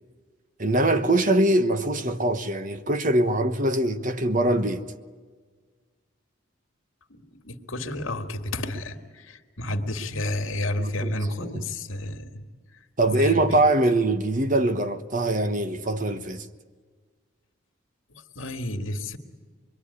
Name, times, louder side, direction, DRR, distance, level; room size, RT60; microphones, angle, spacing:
voice 1, 0.6-4.9 10.8-10.9 11.4-11.6 13.0-16.5, right 1 dB, 40° right, 1.2 m, -23 dB
voice 2, 7.1-12.4 13.0-13.6 18.1-19.2, left 1 dB, 85° left, 2.2 m, -31 dB
25.5 x 22.0 x 9.9 m
head